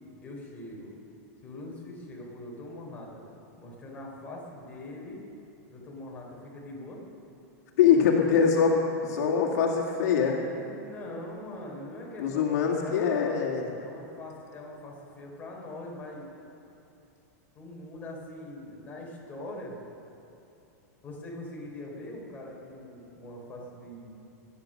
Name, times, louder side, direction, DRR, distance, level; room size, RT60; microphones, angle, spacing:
voice 1, 0.2-0.9 1.4-3.2 3.6-5.2 5.7-7.0 10.5-12.5 12.8-13.5 13.8-16.3 17.5-19.8 21.0-24.1, left 1 dB, 15° left, -3 dB, 4.0 m, -42 dB
voice 2, 7.8-10.4 12.2-13.7, left 6 dB, 70° left, -1 dB, 2.2 m, -23 dB
21.0 x 10.0 x 6.5 m, 2.8 s
supercardioid pair, 145°, 9 cm